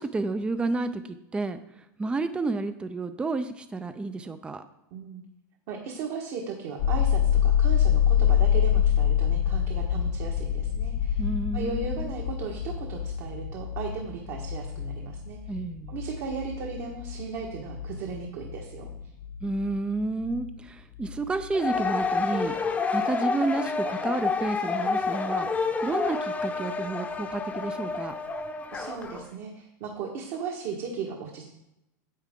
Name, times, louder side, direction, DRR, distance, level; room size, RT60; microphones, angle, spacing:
voice 1, 0.0-4.7 11.2-12.0 15.5-16.0 19.4-22.5 22.9-28.1, right 3 dB, 10° right, 10 dB, 0.5 m, -31 dB
voice 2, 4.9-5.2 5.7-11.3 11.5-15.5 15.9-18.9 28.7-31.5, right 5 dB, 55° right, 0 dB, 1.5 m, -36 dB
sound 1, 6.8-20.6 20.9-21.9, left 9 dB, 65° left, 0.8 m, -27 dB
sound 2, 21.5-29.2, left 4 dB, 15° left, 0.8 m, -29 dB
9.4 x 8.0 x 3.7 m, 0.89 s
hypercardioid pair, 125°, 10 cm